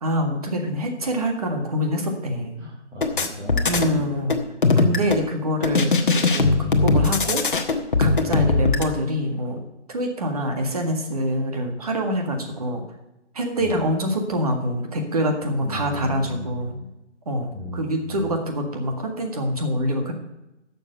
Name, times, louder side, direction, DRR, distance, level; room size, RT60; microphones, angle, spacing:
voice 1, 0.0-2.6 3.7-4.4 4.8-7.4 8.0-9.6 9.9-12.8 13.3-16.8 17.3-20.1, equal, 30° right, 4 dB, 1.8 m, -25 dB
voice 2, 2.6-4.0 13.6-13.8 15.6-16.8 17.5-18.3, equal, 5° right, -6 dB, 1.6 m, -35 dB
sound 1, 3.0-3.9 4.3-5.2 5.6-8.8, left 3 dB, 45° left, 1.3 m, -20 dB
11.0 x 7.1 x 7.8 m, 0.94 s
figure-of-eight pair, 165°, 36 cm